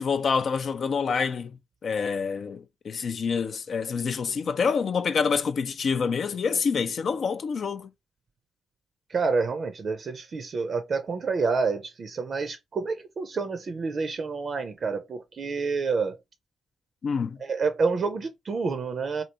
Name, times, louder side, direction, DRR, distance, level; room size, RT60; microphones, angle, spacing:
voice 1, 0.0-1.6 1.8-7.9 17.0-17.4, left 5 dB, 50° left, 0.3 m, -27 dB
voice 2, 9.1-16.2 17.4-19.2, right 4 dB, 45° right, 0.5 m, -28 dB
3.2 x 2.6 x 2.7 m
figure-of-eight pair, 40°, 0 cm